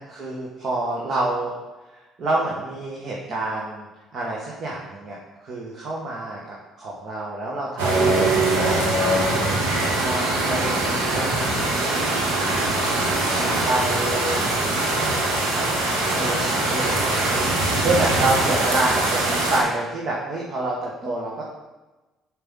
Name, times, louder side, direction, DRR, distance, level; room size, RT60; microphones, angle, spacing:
voice 1, 0.0-1.5 1.9-3.9 4.1-9.4 10.0-12.2 13.4-14.5 14.8-15.8 16.1-21.4, right 2 dB, 55° right, -4 dB, 1.8 m, -28 dB
sound 1, 7.8-19.6, right 2 dB, 85° right, 1.6 m, -22 dB
7.0 x 5.6 x 5.7 m, 1.1 s
hypercardioid pair, 55°, 0 cm